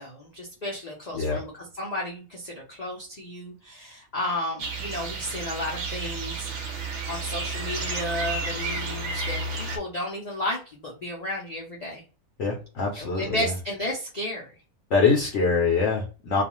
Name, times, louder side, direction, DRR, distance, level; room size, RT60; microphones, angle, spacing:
voice 1, 0.0-6.5 7.1-12.0 13.0-14.5, left 1 dB, 80° left, -3 dB, 0.3 m, -33 dB
sound 1, 4.6-9.8, right 3 dB, 65° right, 0.7 m, -32 dB
voice 2, 12.4-13.5 14.9-16.4, left 4 dB, 60° left, -1 dB, 0.8 m, -24 dB
2.4 x 2.4 x 2.9 m, 0.35 s
omnidirectional pair, 1.6 m